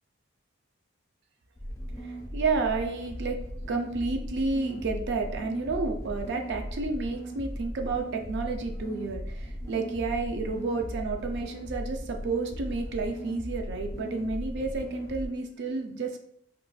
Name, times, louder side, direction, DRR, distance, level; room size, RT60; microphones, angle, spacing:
sound 1, 1.6-15.3, equal, 15° left, 0.4 m, -37 dB
voice 1, 2.0-16.2, right 3 dB, 60° right, 4 dB, 0.4 m, -31 dB
3.8 x 2.3 x 2.3 m, 0.70 s
head